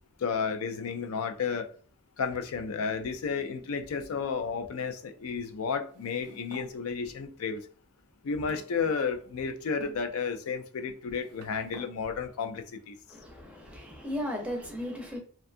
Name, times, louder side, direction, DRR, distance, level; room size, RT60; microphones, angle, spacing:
voice 1, 0.2-1.7 2.2-7.6 8.2-13.0, left 5 dB, 65° left, 0.4 m, -32 dB
sound 1, 5.9-6.7 7.5-7.6 8.5-9.3 9.8-10.0 10.9-11.9, right 4 dB, 80° right, 0.4 m, -50 dB
voice 2, 13.1-15.2, left 1 dB, 5° right, 0.6 m, -36 dB
2.6 x 2.3 x 2.4 m
head